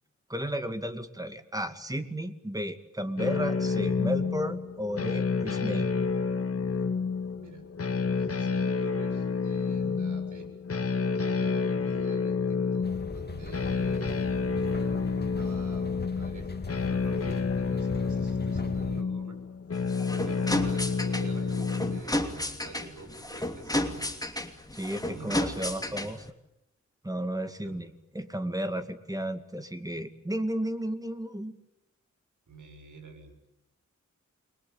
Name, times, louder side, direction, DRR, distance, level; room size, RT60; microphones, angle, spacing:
voice 1, 0.3-5.8 24.8-26.2 27.0-31.5, equal, 10° right, 9 dB, 2.4 m, -33 dB
sound 1, 3.2-22.0, left 5 dB, 50° left, 2.0 m, -29 dB
voice 2, 7.4-7.7 8.1-10.5 11.2-19.4 19.8-24.1 25.1-26.0 27.6-27.8 32.5-33.3, right 5 dB, 85° right, 6 dB, 7.1 m, -47 dB
sound 2, 12.8-19.0, left 3 dB, 35° left, 2.7 m, -39 dB
sound 3, 19.7-26.3, left 1 dB, 10° left, 2.8 m, -32 dB
29.0 x 22.0 x 8.8 m, 0.83 s
wide cardioid pair, 95°, 30 cm